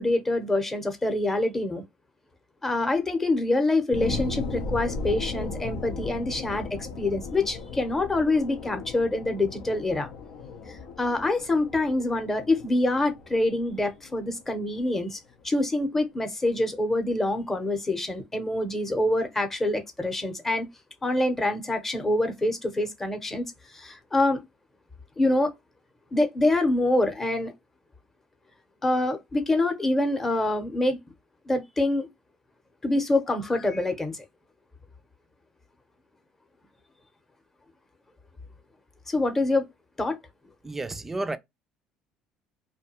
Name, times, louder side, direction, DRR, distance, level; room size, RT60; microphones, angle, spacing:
voice 1, 0.0-1.8 2.6-6.7 7.0-10.1 11.0-15.2 15.4-20.7 21.0-23.4 23.7-24.4 25.2-25.5 26.1-27.5 28.8-31.0 31.5-32.1 32.8-34.2 39.1-39.6 40.0-40.2, left 2 dB, 15° left, 0.7 m, -25 dB
sound 1, 3.9-14.9 15.4-15.5, left 4 dB, 85° left, 0.6 m, -36 dB
voice 2, 40.6-41.4, right 2 dB, 15° right, 0.3 m, -31 dB
2.6 x 2.2 x 2.8 m
cardioid pair, 115°, 2 cm